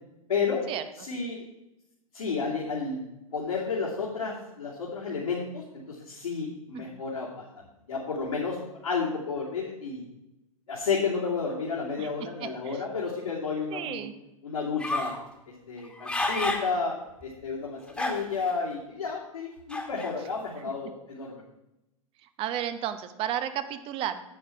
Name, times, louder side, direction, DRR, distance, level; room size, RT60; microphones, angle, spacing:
voice 1, 0.3-0.6 1.1-1.4 2.1-3.0 3.3-8.6 8.8-10.0 10.7-14.1 14.4-15.1 15.7-16.9 17.2-21.4, left 5 dB, 75° left, -6 dB, 2.9 m, -31 dB
voice 2, 12.0-12.8 13.7-14.1 22.2-24.2, right 10 dB, 30° right, 11 dB, 1.0 m, -33 dB
sound 1, 14.8-15.2 15.8-16.7 17.2-17.3 17.9-18.5 19.7-20.1, left 2 dB, 5° left, 1.8 m, -30 dB
10.0 x 8.3 x 5.8 m, 0.92 s
figure-of-eight pair, 105°, 18 cm